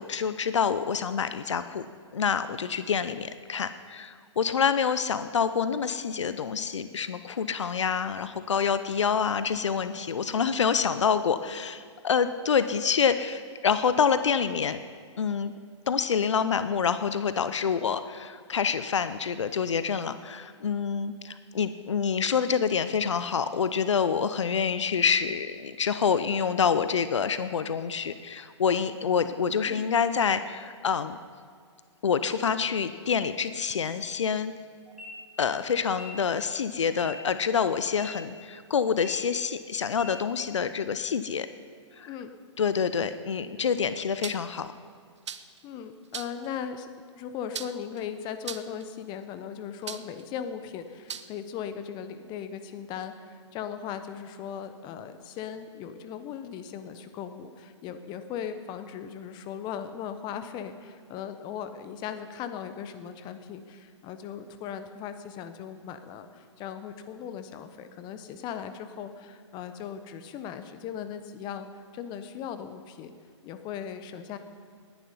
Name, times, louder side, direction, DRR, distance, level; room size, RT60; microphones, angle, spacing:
voice 1, 0.0-1.9 2.1-14.8 15.2-15.5 15.9-31.2 32.0-34.5 35.4-41.5 42.0-42.1 42.6-44.7, left 6 dB, 70° left, 12 dB, 0.7 m, -27 dB
sound 1, 34.9-35.1 35.9-36.1 36.9-37.1 37.9-38.1 38.9-39.1 39.9-40.1, left 1 dB, ahead, 2.9 m, -45 dB
sound 2, 44.2-44.6 45.3-45.6 46.1-46.5 47.5-48.0 48.4-48.8 49.9-50.2 51.1-51.3, right 7 dB, 70° right, 0.8 m, -37 dB
voice 2, 45.6-46.9 47.1-73.1 73.4-74.4, left 8 dB, 30° left, 10 dB, 1.0 m, -38 dB
19.5 x 10.5 x 5.6 m, 2.1 s
figure-of-eight pair, 120°, 16 cm